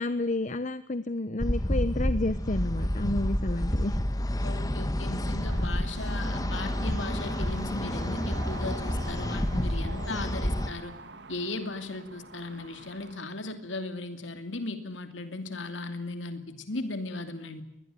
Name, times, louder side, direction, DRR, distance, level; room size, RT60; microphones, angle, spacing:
voice 1, 0.0-4.0, left 2 dB, 40° left, 13 dB, 0.9 m, -30 dB
sound 1, 1.4-10.7, left 1 dB, 20° left, 1.6 m, -29 dB
voice 2, 4.4-10.9 11.3-17.6, left 2 dB, 75° left, 8 dB, 2.7 m, -37 dB
sound 2, 5.5-13.2, right 3 dB, 65° right, 2.0 m, -45 dB
22.5 x 20.0 x 9.1 m, 0.81 s
head